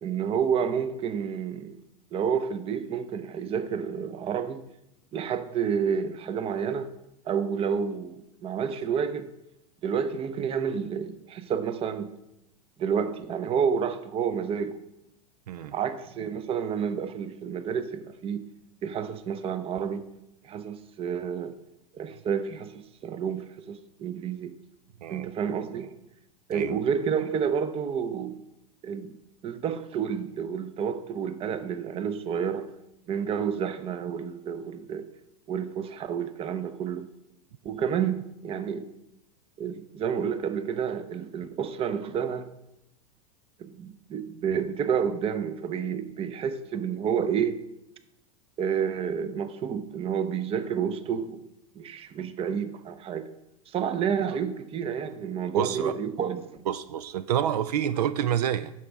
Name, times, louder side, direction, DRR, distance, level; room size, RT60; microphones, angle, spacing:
voice 1, 0.0-1.8 2.1-4.6 5.1-6.9 7.3-9.3 9.8-12.1 12.8-14.8 15.7-18.4 18.8-20.1 20.4-21.5 21.9-24.5 25.1-25.9 26.5-28.4 28.8-29.1 29.4-32.7 33.1-35.1 35.5-37.1 37.6-38.9 39.6-42.5 43.6-47.5 48.6-51.4 51.8-53.3 53.7-56.5, right 7 dB, 30° right, 0.7 m, -30 dB
voice 2, 55.5-55.9 56.7-58.7, right 10 dB, 75° right, 0.4 m, -28 dB
9.0 x 6.1 x 3.5 m
hypercardioid pair, 100°, 20 cm